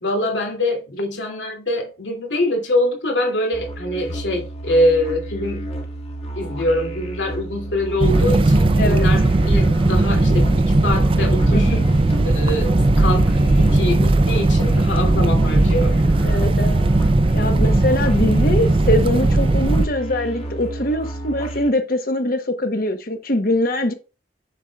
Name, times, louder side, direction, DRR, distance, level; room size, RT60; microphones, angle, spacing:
voice 1, 0.0-5.7 6.4-11.8 12.2-16.0, left 1 dB, 85° left, 2.6 m, -24 dB
sound 1, 3.5-21.7, right 1 dB, 35° left, 1.5 m, -32 dB
sound 2, 8.0-19.9, right 2 dB, 30° right, 0.4 m, -17 dB
voice 2, 11.5-11.8 16.2-16.9 17.3-23.9, left 1 dB, 55° left, 1.1 m, -22 dB
7.3 x 6.5 x 2.3 m
head